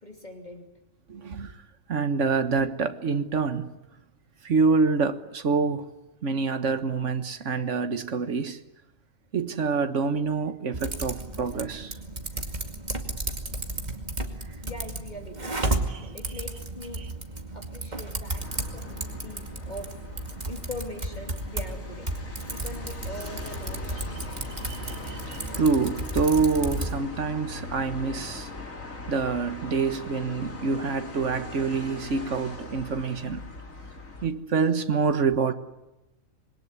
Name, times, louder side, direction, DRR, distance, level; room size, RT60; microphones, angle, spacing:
voice 1, 0.0-0.7 14.6-15.7 16.1-17.1 17.5-20.0 20.4-22.1 22.4-24.3 33.8-33.9, left 1 dB, 35° left, 3.0 m, -42 dB
voice 2, 1.1-1.5 1.9-3.7 4.4-5.9 6.2-8.6 9.3-12.0 24.6-28.5 29.1-33.4 34.2-35.5, right 4 dB, 65° right, 1.7 m, -26 dB
Typing, 10.7-27.0, right 2 dB, 30° right, 2.4 m, -34 dB
sound 1, 18.4-34.3, left 2 dB, 75° left, 3.4 m, -40 dB
26.5 x 22.0 x 9.7 m
omnidirectional pair, 1.4 m